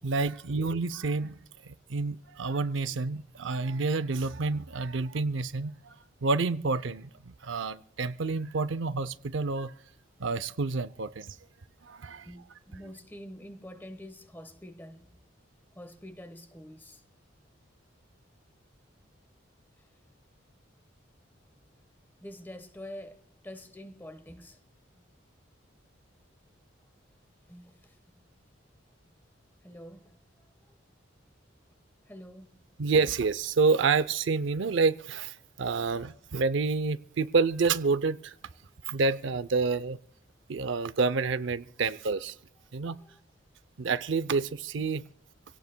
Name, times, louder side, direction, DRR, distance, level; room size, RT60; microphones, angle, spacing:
voice 1, 0.0-1.4 1.7-5.9 6.2-9.7 10.2-11.4 11.8-12.3 32.8-38.3 38.9-40.0 40.5-42.3 42.7-43.0 43.8-45.0, right 4 dB, 75° right, 0.5 m, -28 dB
voice 2, 12.2-15.2 15.7-17.0 22.2-24.6 24.9-25.1 27.5-28.2 29.0-29.1 29.6-30.2 30.4-30.8 32.1-32.6 42.8-43.2 44.8-44.9, equal, 10° left, 1.2 m, -47 dB
26.5 x 17.5 x 2.2 m
head